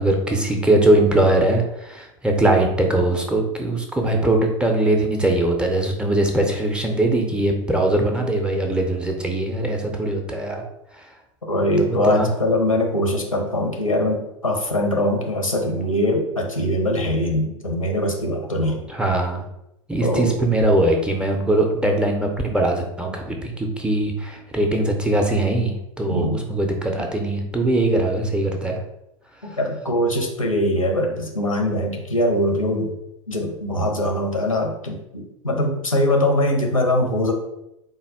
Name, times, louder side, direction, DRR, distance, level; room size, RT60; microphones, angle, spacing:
voice 1, 0.0-10.6 11.8-12.3 18.9-19.4 19.9-28.8, right 1 dB, 5° right, 2 dB, 0.4 m, -21 dB
voice 2, 11.4-18.9 20.0-20.3 26.1-26.4 29.4-32.9 33.3-37.3, left 1 dB, 85° left, 2 dB, 0.7 m, -22 dB
3.5 x 2.2 x 3.3 m, 0.86 s
figure-of-eight pair, 85°, 17 cm